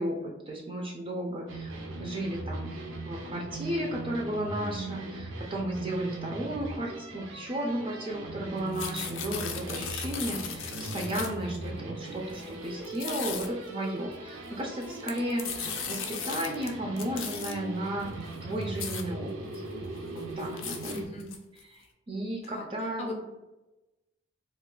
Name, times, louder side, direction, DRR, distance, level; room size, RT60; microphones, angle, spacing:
voice 1, 0.0-1.7 2.0-2.8 3.0-19.9 20.4-21.0 21.5-23.2, right 1 dB, 25° right, -1 dB, 0.4 m, -34 dB
sound 1, 1.5-21.1, right 2 dB, 90° right, 0.5 m, -39 dB
sound 2, 8.6-11.5 12.3-12.4 12.8-13.5 14.7-16.7 17.0-17.5 18.2-18.3 18.6-19.0 19.5-19.6 20.0-21.6, left 7 dB, 85° left, 0.4 m, -37 dB
voice 2, 20.9-21.3 22.4-23.2, left 1 dB, 35° left, 1 dB, 0.6 m, -39 dB
2.3 x 2.3 x 3.6 m, 1.0 s
head